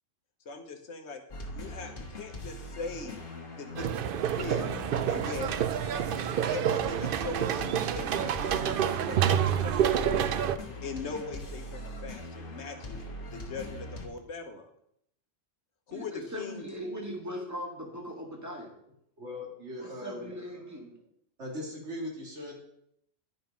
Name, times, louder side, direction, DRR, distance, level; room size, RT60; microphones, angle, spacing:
voice 1, 0.4-3.2 3.6-4.8 5.1-5.5 6.5-10.5 10.8-13.0 13.3-14.7 15.9-16.7, left 4 dB, 75° left, 6 dB, 1.4 m, -41 dB
sound 1, 1.3-14.1, left 2 dB, 50° left, 1.5 m, -42 dB
sound 2, 3.8-10.6, right 9 dB, 60° right, 0.6 m, -28 dB
voice 2, 15.9-18.7 19.8-21.0, equal, 15° right, 0 dB, 1.8 m, -39 dB
voice 3, 19.2-20.3 21.4-22.5, left 1 dB, 80° right, -1 dB, 2.5 m, -39 dB
11.0 x 5.2 x 5.1 m, 0.73 s
omnidirectional pair, 1.2 m